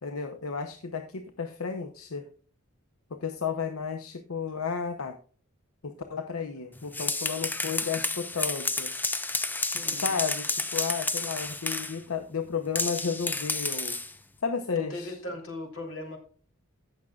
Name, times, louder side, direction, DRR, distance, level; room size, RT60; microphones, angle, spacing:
voice 1, 0.0-2.2 3.2-5.2 5.8-8.9 9.9-14.0 14.4-15.2, left 5 dB, 85° left, 7 dB, 0.8 m, -33 dB
sound 1, 6.8-12.0 12.7-14.1, left 3 dB, 10° left, 0.5 m, -31 dB
voice 2, 9.7-10.1 14.7-16.2, left 1 dB, 65° left, 2 dB, 3.4 m, -38 dB
17.0 x 6.4 x 2.4 m, 0.42 s
head